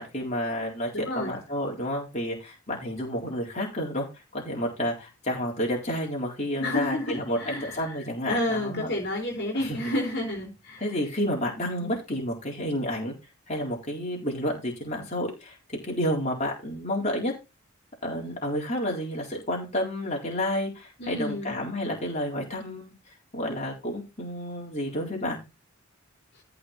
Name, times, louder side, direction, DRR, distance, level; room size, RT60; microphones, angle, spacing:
voice 1, 0.0-4.1 4.3-8.9 9.5-9.9 10.8-13.1 13.5-15.6 15.8-17.3 18.0-22.9 23.3-25.4, equal, 30° left, -2 dB, 4.1 m, -30 dB
voice 2, 0.9-1.4 6.6-7.9 8.3-10.9 11.8-12.0 21.0-21.5, left 1 dB, 50° left, 0 dB, 3.7 m, -30 dB
14.0 x 5.2 x 4.3 m, 0.26 s
head